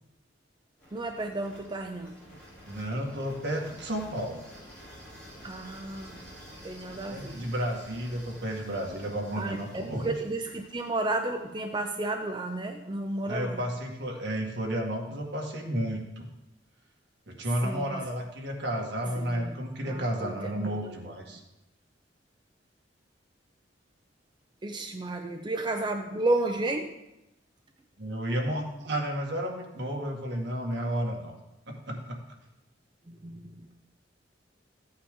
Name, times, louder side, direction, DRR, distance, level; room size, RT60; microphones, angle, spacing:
sound 1, 0.8-12.7, equal, 5° left, 4.8 m, -50 dB
voice 1, 0.9-2.1 5.4-6.3 6.6-7.5 9.3-13.6 17.6-18.0 19.2-19.5 19.8-20.9 24.6-26.9 33.1-33.7, right 2 dB, 25° right, 3 dB, 0.6 m, -32 dB
voice 2, 2.6-4.4 7.1-10.1 13.3-16.3 17.3-21.4 28.0-31.4 31.7-32.2, equal, 65° right, 0 dB, 1.9 m, -32 dB
14.5 x 8.7 x 3.7 m, 0.93 s
head